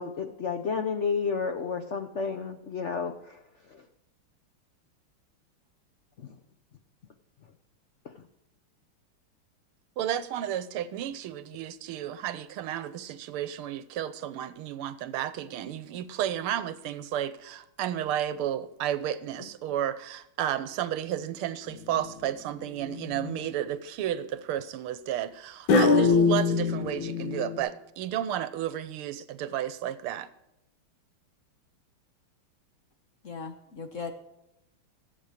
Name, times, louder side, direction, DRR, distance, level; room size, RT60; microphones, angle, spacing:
voice 1, 0.0-3.8 6.2-6.4 8.0-8.2, left 5 dB, 80° left, 6 dB, 0.6 m, -32 dB
voice 2, 10.0-30.3, right 11 dB, 80° right, 14 dB, 1.6 m, -32 dB
sound 1, 21.8-22.3 22.9-23.4 25.7-27.6, left 4 dB, 65° left, 1.8 m, -24 dB
voice 3, 33.2-34.1, left 5 dB, 50° left, 5 dB, 1.0 m, -38 dB
13.5 x 8.0 x 5.0 m, 0.87 s
omnidirectional pair, 2.4 m